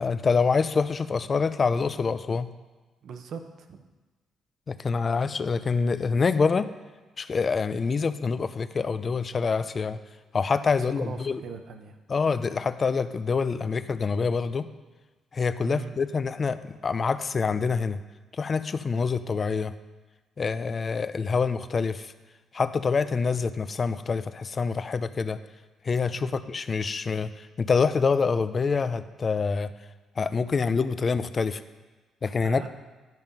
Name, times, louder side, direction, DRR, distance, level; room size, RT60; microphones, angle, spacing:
voice 1, 0.0-2.5 4.7-6.7 7.2-10.0 10.3-11.4 12.1-14.7 15.3-18.0 18.3-19.7 20.4-22.1 22.5-25.4 25.8-29.7 30.2-31.6 32.2-32.7, left 5 dB, 40° left, 13 dB, 0.5 m, -26 dB
voice 2, 3.0-3.8 10.8-12.0 15.6-16.0 19.0-19.1 26.1-26.5 32.4-32.7, right 6 dB, 65° right, 7 dB, 0.9 m, -40 dB
11.0 x 5.6 x 5.3 m, 1.3 s
cardioid pair, 90°, 0 cm